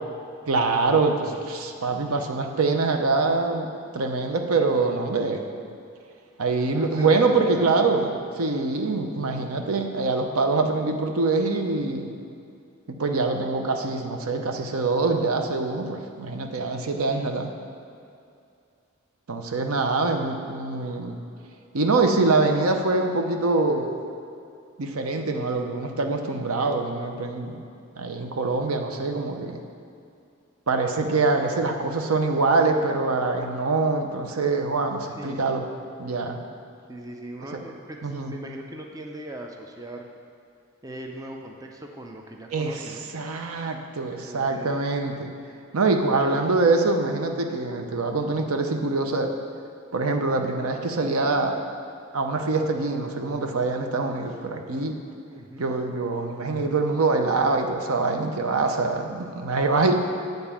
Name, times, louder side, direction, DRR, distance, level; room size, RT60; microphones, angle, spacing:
voice 1, 0.5-3.7 3.9-5.4 6.4-8.1 8.4-12.1 12.9-17.5 19.3-21.2 21.7-23.9 24.8-27.6 28.0-29.6 30.7-35.7 36.0-36.4 38.0-38.3 42.5-45.3 45.7-49.4 49.9-51.6 52.1-55.0 55.6-59.9, right 3 dB, 80° right, 5 dB, 0.7 m, -24 dB
voice 2, 6.7-8.1 35.2-35.4 36.9-40.1 40.8-43.1 44.3-44.9 46.2-46.5 55.3-55.7, right 1 dB, 15° right, 2 dB, 0.5 m, -39 dB
9.0 x 3.9 x 7.2 m, 2.5 s
head